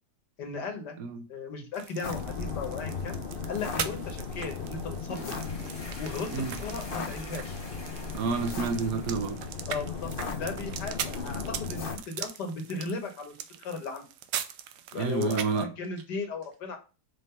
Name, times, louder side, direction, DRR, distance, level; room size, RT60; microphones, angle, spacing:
voice 1, 0.4-1.0 1.3-3.2 3.5-5.4 6.0-7.6 9.7-13.3 13.6-14.0 14.9-16.8, left 4 dB, 80° left, 1.9 m, -36 dB
sound 1, 1.7-15.6, right 10 dB, 85° right, 1.2 m, -41 dB
sound 2, 2.0-12.0, left 5 dB, 45° left, 0.8 m, -36 dB
sound 3, 5.0-10.0, left 2 dB, 15° left, 1.2 m, -46 dB
voice 2, 8.1-9.4 14.9-15.7, right 4 dB, 65° right, 1.2 m, -29 dB
5.2 x 3.7 x 5.4 m
omnidirectional pair, 1.8 m